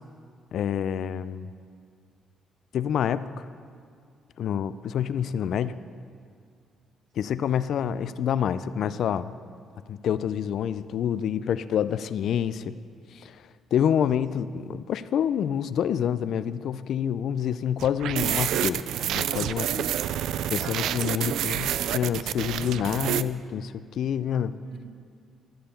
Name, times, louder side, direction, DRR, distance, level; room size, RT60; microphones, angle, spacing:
voice 1, 0.5-1.5 2.7-3.5 4.4-5.7 7.2-9.3 9.9-12.8 13.1-19.8 20.5-24.6, left 9 dB, 70° left, 14 dB, 0.4 m, -27 dB
voice 2, 14.0-14.5 24.4-24.9, right 5 dB, 65° right, 0 dB, 2.2 m, -54 dB
sound 1, 17.8-23.2, right 11 dB, 80° right, 0.3 m, -28 dB
14.5 x 5.6 x 6.9 m, 2.2 s
cardioid pair, 90°, 0 cm